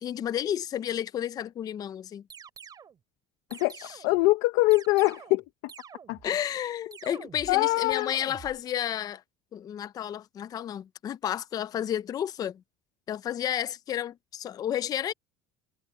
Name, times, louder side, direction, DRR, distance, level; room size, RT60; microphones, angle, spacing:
voice 1, 0.0-2.2 6.2-9.2 9.5-12.6 13.1-15.1, left 10 dB, 25° left, 0.4 m, -31 dB
sound 1, 2.3-3.0 3.5-4.2 4.7-5.4 5.7-6.3 6.9-7.6 7.9-8.6, right 7 dB, 25° right, 2.9 m, -47 dB
voice 2, 4.0-5.7 6.1-6.2 7.5-8.1, left 20 dB, 75° left, 0.9 m, -23 dB
cardioid pair, 165°, 15 cm